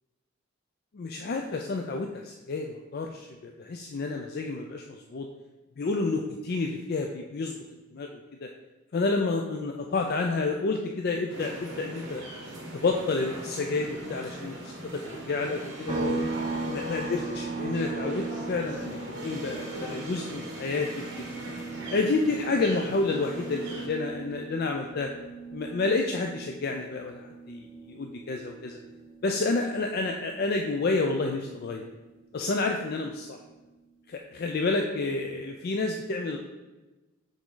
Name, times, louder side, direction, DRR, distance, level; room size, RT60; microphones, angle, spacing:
voice 1, 0.9-5.3 5.8-7.6 7.9-8.5 8.9-12.3 12.7-14.5 15.3-16.1 16.6-21.3 21.9-25.1 25.5-28.8 29.2-31.9 32.3-33.4 34.1-36.4, left 3 dB, 50° left, 2 dB, 0.4 m, -30 dB
sound 1, 11.3-23.9, right 1 dB, 60° right, 1.2 m, -40 dB
sound 2, 15.9-29.4 29.8-32.0, right 3 dB, 25° right, 0.8 m, -38 dB
7.2 x 3.6 x 3.8 m, 1.1 s
head